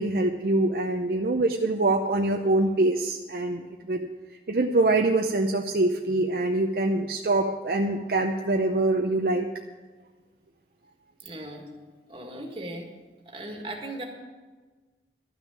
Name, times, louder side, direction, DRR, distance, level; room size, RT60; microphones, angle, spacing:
voice 1, 0.0-4.1 4.5-9.5, right 2 dB, 55° right, 3 dB, 0.6 m, -24 dB
voice 2, 11.2-11.7 12.1-12.9 13.3-14.0, right 1 dB, 30° right, 1 dB, 1.9 m, -37 dB
12.5 x 6.2 x 8.8 m, 1.3 s
head